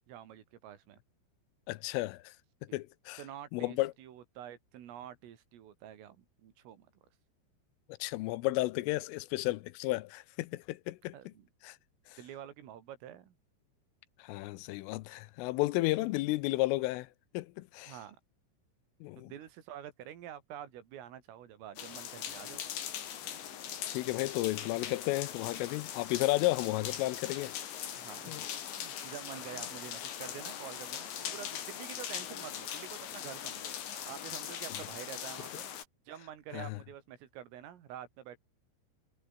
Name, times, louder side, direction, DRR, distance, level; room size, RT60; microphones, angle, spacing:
voice 1, 0.1-1.0 2.7-2.8 3.2-6.9 11.1-11.5 12.2-13.4 17.9-18.2 19.2-22.7 28.0-28.4 28.7-35.7 36.1-38.4, right 10 dB, 85° right, 5.3 m, -48 dB
voice 2, 1.7-2.3 2.7-3.2 3.5-3.9 8.0-11.3 11.6-11.8 12.1-12.2 14.2-17.1 17.3-18.0 19.0-19.3 23.9-27.6 28.3-28.5 36.5-36.8, left 19 dB, 90° left, 3.4 m, -33 dB
sound 1, 21.8-35.8, left 10 dB, 65° left, 4.9 m, -41 dB
omnidirectional pair, 5.7 m